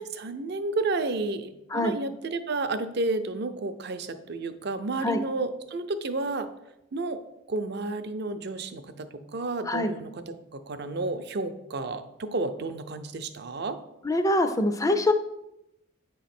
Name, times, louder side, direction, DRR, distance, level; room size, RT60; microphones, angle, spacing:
voice 1, 0.0-6.5 6.9-7.2 7.5-13.8, right 3 dB, 50° right, 9 dB, 0.5 m, -31 dB
voice 2, 14.0-15.1, left 1 dB, 15° left, 8 dB, 0.4 m, -24 dB
8.8 x 3.1 x 5.9 m, 0.89 s
head